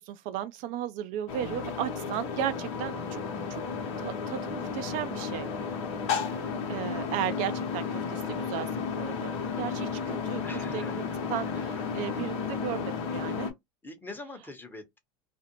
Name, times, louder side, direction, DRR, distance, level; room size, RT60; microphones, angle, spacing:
voice 1, 0.0-3.2 3.5-3.6 4.0-5.5 6.3-10.4 10.7-10.8 11.3-13.5, right 11 dB, 55° right, 0.4 m, -35 dB
sound 1, 1.3-13.5, left 6 dB, 70° left, 0.9 m, -33 dB
voice 2, 10.4-11.0 12.0-12.7 13.8-15.0, left 2 dB, 10° left, 0.9 m, -44 dB
2.5 x 2.0 x 2.8 m
hypercardioid pair, 95°, 16 cm